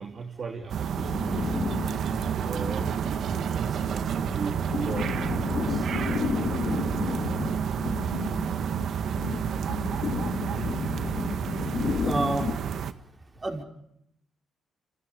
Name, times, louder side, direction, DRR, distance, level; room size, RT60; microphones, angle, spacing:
voice 1, 0.0-1.7 2.4-5.9, right 5 dB, 45° right, 3 dB, 3.0 m, -37 dB
sound 1, 0.7-12.9, right 8 dB, 65° right, 1.6 m, -30 dB
sound 2, 1.0-12.6, left 6 dB, 55° left, 2.4 m, -33 dB
voice 2, 12.0-12.5 13.4-13.6, right 2 dB, 25° right, 4 dB, 5.7 m, -27 dB
29.5 x 27.0 x 5.3 m, 0.74 s
cardioid pair, 90°, 0 cm